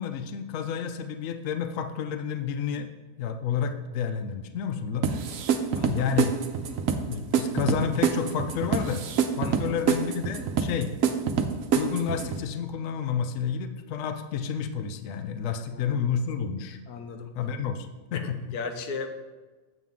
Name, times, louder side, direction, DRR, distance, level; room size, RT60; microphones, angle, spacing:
voice 1, 0.0-2.9 3.2-5.1 5.9-6.3 7.0-9.0 9.4-10.9 11.7-16.8 17.3-18.6, left 7 dB, 65° left, 8 dB, 0.9 m, -30 dB
sound 1, 5.0-12.4, right 7 dB, 65° right, 1.0 m, -26 dB
voice 2, 5.8-6.1 9.4-9.8 15.5-16.0 16.9-17.3 18.1-19.1, left 5 dB, 90° left, 6 dB, 1.3 m, -37 dB
8.3 x 7.5 x 3.6 m, 1.3 s
omnidirectional pair, 1.6 m